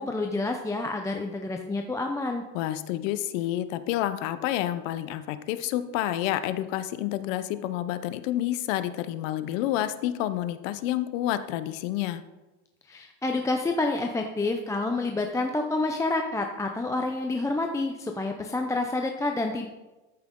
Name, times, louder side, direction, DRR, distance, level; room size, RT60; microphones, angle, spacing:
voice 1, 0.0-2.4 12.9-19.7, left 2 dB, 10° left, 3 dB, 0.6 m, -28 dB
voice 2, 2.5-12.2, left 13 dB, 75° left, 12 dB, 0.9 m, -29 dB
13.5 x 5.9 x 3.8 m, 1.1 s
supercardioid pair, 125°, 39 cm